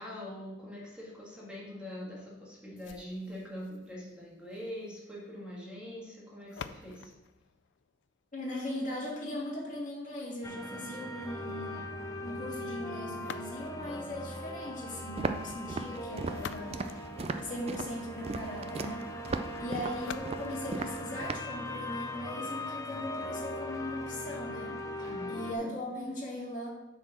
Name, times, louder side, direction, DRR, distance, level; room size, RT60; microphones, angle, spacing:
voice 1, 0.0-7.1 25.0-25.4, equal, 5° right, -5 dB, 1.7 m, -43 dB
sound 1, 2.8-8.7 13.1-14.0 16.0-17.9 19.9-21.9, left 7 dB, 75° left, 0.4 m, -49 dB
voice 2, 8.3-11.9 12.2-17.0 17.4-19.0 19.6-24.8 25.3-26.7, left 1 dB, 45° left, -3 dB, 2.1 m, -39 dB
sound 2, 10.4-25.6, left 1 dB, 15° left, 0.5 m, -40 dB
Walk footsteps, 15.2-21.5, right 3 dB, 30° right, 0.4 m, -37 dB
7.2 x 4.2 x 5.9 m, 1.0 s
head